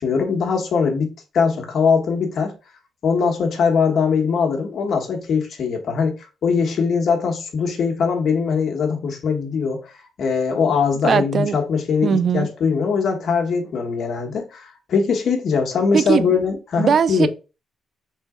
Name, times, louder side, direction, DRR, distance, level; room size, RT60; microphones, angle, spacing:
voice 1, 0.0-2.5 3.0-6.1 6.4-9.8 10.2-17.3, left 5 dB, 50° left, 1.3 m, -21 dB
voice 2, 11.0-11.6 12.0-12.5 15.9-16.3 16.8-17.3, right 6 dB, 40° right, 0.4 m, -19 dB
4.0 x 3.7 x 3.6 m
cardioid pair, 170°, 0 cm